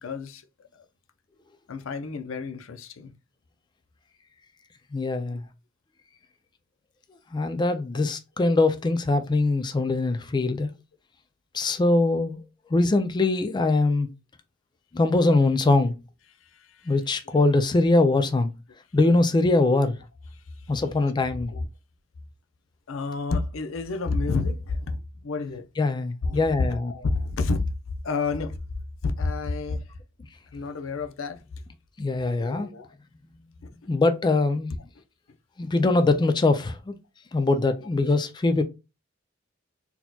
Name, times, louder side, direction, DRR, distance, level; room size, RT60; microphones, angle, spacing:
voice 1, 0.0-0.4 1.7-3.1 16.8-16.9 21.5-21.7 22.9-25.7 26.2-26.4 26.7-27.7 28.0-28.6 29.0-29.8 30.5-31.4 32.4-32.9 33.6-33.7, left 3 dB, 90° left, 0.5 m, -29 dB
voice 2, 4.9-5.5 7.3-10.7 11.5-12.4 12.7-14.1 14.9-16.0 16.9-18.5 18.9-20.0 20.7-21.5 25.8-26.9 32.0-32.7 33.9-34.7 35.6-37.0 37.3-38.6, left 2 dB, 20° left, 0.4 m, -22 dB
4.1 x 2.8 x 2.2 m
head